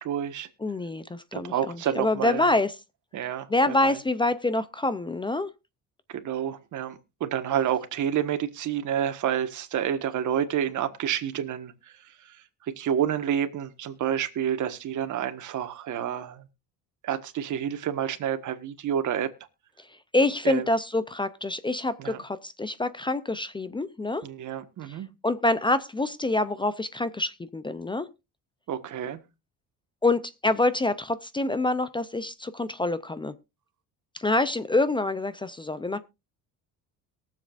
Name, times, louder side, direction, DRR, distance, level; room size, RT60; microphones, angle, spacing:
voice 1, 0.0-0.5 1.3-2.4 3.1-4.0 6.1-11.7 12.2-12.4 12.7-16.4 17.0-19.3 20.4-20.6 22.0-22.2 24.2-25.1 28.7-29.2, right 9 dB, 55° right, 1.5 m, -29 dB
voice 2, 0.6-2.7 3.5-5.5 19.8-24.2 24.9-25.0 25.2-28.1 30.0-33.3 34.1-36.0, left 2 dB, 15° left, 0.5 m, -26 dB
22.5 x 7.5 x 2.5 m
cardioid pair, 125°, 35 cm